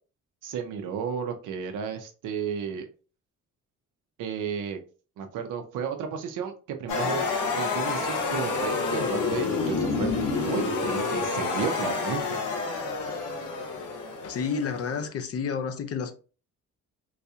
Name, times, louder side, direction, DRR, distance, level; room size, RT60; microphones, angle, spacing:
voice 1, 0.4-2.8 4.2-4.8 5.2-7.2 7.5-12.4, right 7 dB, 85° right, 0.7 m, -33 dB
sound 1, 6.9-15.1, left 4 dB, 80° left, 1.0 m, -29 dB
voice 2, 14.2-16.1, left 6 dB, 50° left, 0.6 m, -30 dB
4.0 x 2.8 x 2.3 m
cardioid pair, 90°, 30 cm